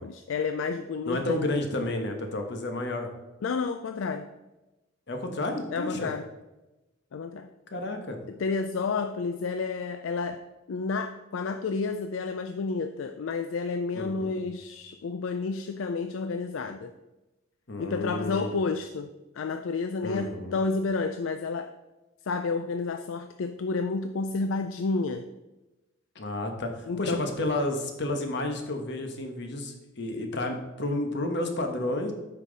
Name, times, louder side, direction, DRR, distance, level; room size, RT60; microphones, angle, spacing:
voice 1, 0.0-1.4 3.4-4.3 5.7-6.3 7.1-7.5 8.3-10.4 10.7-16.9 17.8-21.7 22.3-25.3 26.9-27.3, left 4 dB, 80° left, 8 dB, 0.4 m, -30 dB
voice 2, 1.1-3.1 5.1-6.1 7.7-8.2 13.9-14.5 17.7-18.5 20.0-20.6 26.1-32.1, left 1 dB, 60° left, 4 dB, 1.1 m, -31 dB
8.3 x 5.8 x 4.0 m, 1.0 s
head